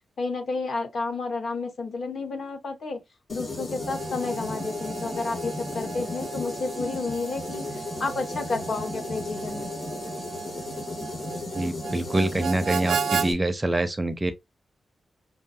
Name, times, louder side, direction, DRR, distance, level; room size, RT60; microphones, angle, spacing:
voice 1, 0.2-3.0 3.3-7.6 8.0-9.7, left 3 dB, 55° left, 1.1 m, -31 dB
sound 1, 3.3-13.3, left 2 dB, 35° left, 1.7 m, -35 dB
Harmonica, 3.8-13.3, right 7 dB, 80° right, 0.4 m, -35 dB
voice 2, 11.5-14.3, right 1 dB, 15° right, 0.5 m, -25 dB
5.5 x 2.6 x 2.6 m
wide cardioid pair, 160°, 0 cm